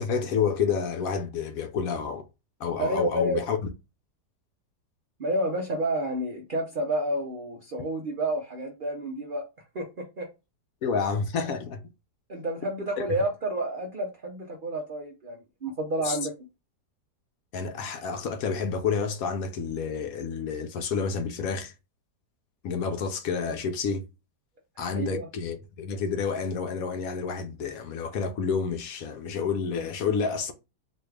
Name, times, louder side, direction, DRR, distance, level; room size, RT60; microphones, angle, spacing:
voice 1, 0.0-2.2 2.6-3.6 10.8-11.8 13.0-13.1 16.0-16.2 17.5-21.7 22.6-24.0 24.8-30.5, left 6 dB, 70° left, 0.9 m, -29 dB
voice 2, 2.8-3.5 5.2-9.4 9.7-10.3 12.3-16.3 24.9-25.3, right 1 dB, 60° right, 0.5 m, -30 dB
4.1 x 2.3 x 3.2 m
omnidirectional pair, 1.7 m